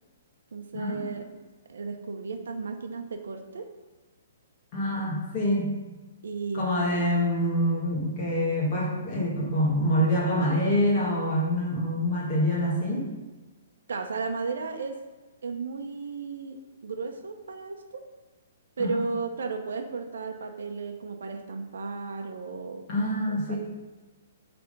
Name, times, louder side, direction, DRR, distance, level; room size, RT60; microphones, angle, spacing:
voice 1, 0.5-1.4 1.7-3.7 6.2-7.0 13.9-15.0 15.4-18.0 18.8-22.9 23.3-23.6, right 4 dB, 85° right, 5 dB, 0.8 m, -34 dB
voice 2, 4.7-5.7 6.5-13.1 18.8-19.0 22.9-23.6, equal, 25° left, -5 dB, 1.5 m, -26 dB
7.8 x 3.5 x 5.4 m, 1.2 s
hypercardioid pair, 170°, 0 cm